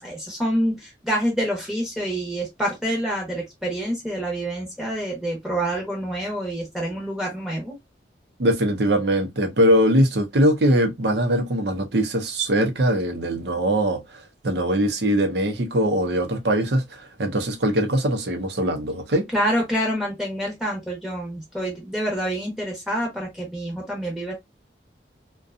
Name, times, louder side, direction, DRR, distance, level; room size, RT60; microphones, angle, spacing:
voice 1, 0.0-7.7 19.3-24.3, equal, 5° right, 0.8 m, -27 dB
voice 2, 8.4-14.0 14.4-16.8 17.2-19.3, equal, 70° right, 0.7 m, -21 dB
2.6 x 2.2 x 2.4 m
head